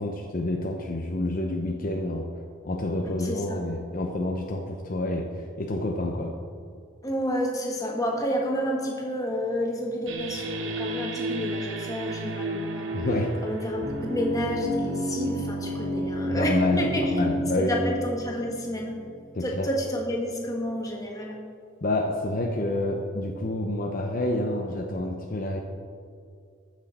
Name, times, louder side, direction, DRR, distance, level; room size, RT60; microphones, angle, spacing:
voice 1, 0.0-2.3 2.6-6.3 12.9-13.4 16.3-17.9 19.3-19.7 21.8-25.6, left 1 dB, 45° left, 2 dB, 0.7 m, -28 dB
voice 2, 3.2-3.6 7.0-13.1 13.4-17.1 17.6-18.9 19.4-21.4, equal, 20° left, -1 dB, 1.5 m, -30 dB
sound 1, 10.1-19.4, equal, 75° right, 1.0 m, -31 dB
14.5 x 6.3 x 4.2 m, 2.3 s
head